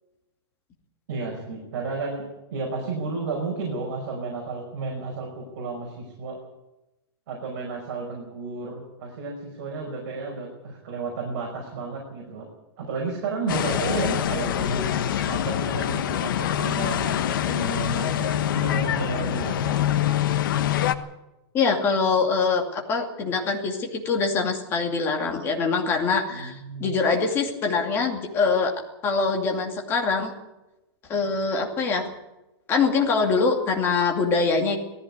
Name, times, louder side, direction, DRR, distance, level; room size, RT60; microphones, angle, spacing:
voice 1, 1.1-6.4 7.3-12.5 12.8-20.0 26.3-27.0, right 4 dB, 45° right, -1 dB, 5.4 m, -32 dB
sound 1, 13.5-20.9, left 10 dB, 50° left, 1.3 m, -25 dB
voice 2, 21.5-28.7 29.0-30.3 31.1-32.1 32.7-34.8, left 4 dB, 15° left, 2 dB, 2.5 m, -24 dB
18.5 x 15.0 x 9.6 m, 0.97 s
supercardioid pair, 180°, 14 cm